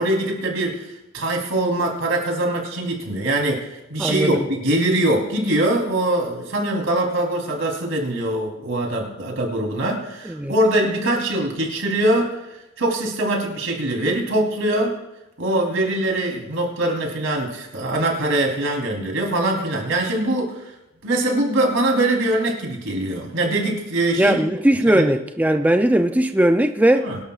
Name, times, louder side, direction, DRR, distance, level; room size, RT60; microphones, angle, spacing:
voice 1, 0.0-12.3 12.8-14.9 15.4-20.6 21.0-24.4 24.7-25.1 27.0-27.2, right 1 dB, 80° right, 3.4 m, -22 dB
voice 2, 4.0-4.4 10.3-10.5 24.2-27.1, right 1 dB, 10° right, 0.4 m, -18 dB
23.5 x 12.0 x 2.4 m
head